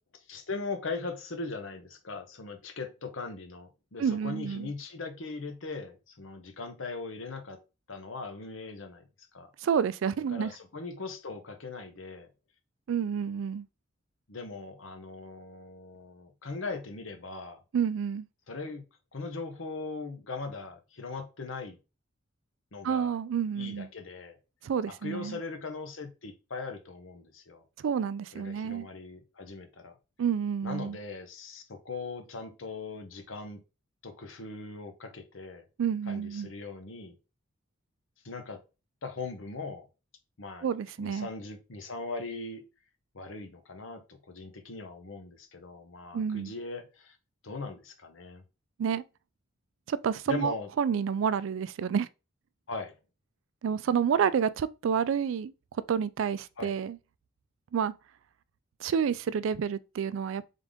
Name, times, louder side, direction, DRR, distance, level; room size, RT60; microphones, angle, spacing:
voice 1, 0.3-7.6 7.9-9.0 9.3-9.5 10.3-12.3 14.3-17.6 18.5-18.8 19.1-21.8 22.7-23.2 23.5-24.4 24.9-27.6 28.3-29.9 30.6-33.6 34.0-35.6 36.1-37.2 38.2-38.6 39.0-39.9 40.4-40.7 41.0-42.6 43.1-47.2 47.4-48.4 50.3-50.7 52.7-53.0 56.6-56.7, left 3 dB, 75° left, 0.9 m, -40 dB
voice 2, 4.0-4.7 9.6-10.5 12.9-13.7 17.7-18.3 22.8-23.9 24.6-25.4 27.8-28.9 30.2-31.0 35.8-36.5 40.6-41.3 46.1-46.5 48.8-49.0 49.9-52.1 53.6-55.5 55.9-57.0 57.7-57.9 58.8-60.4, right 7 dB, 70° right, 0.3 m, -29 dB
3.7 x 3.5 x 3.5 m
head